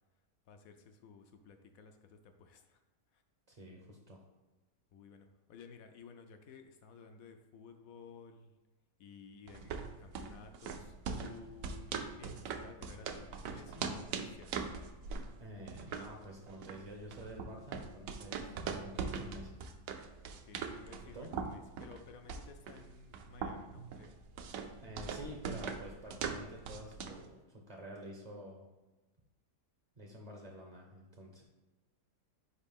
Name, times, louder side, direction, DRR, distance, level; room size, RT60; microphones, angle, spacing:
voice 1, 0.5-2.8 3.1-3.2 4.9-8.5 9.0-9.7 10.0-14.6 20.3-24.2 25.0-25.2, left 5 dB, 70° left, 6 dB, 0.9 m, -55 dB
voice 2, 3.5-4.2 15.4-19.6 21.1-21.3 24.8-28.7 30.0-31.4, equal, 40° right, 0 dB, 0.6 m, -49 dB
sound 1, 9.5-27.3, right 5 dB, 70° right, 0.9 m, -42 dB
4.9 x 4.2 x 5.2 m, 1.1 s
omnidirectional pair, 1.8 m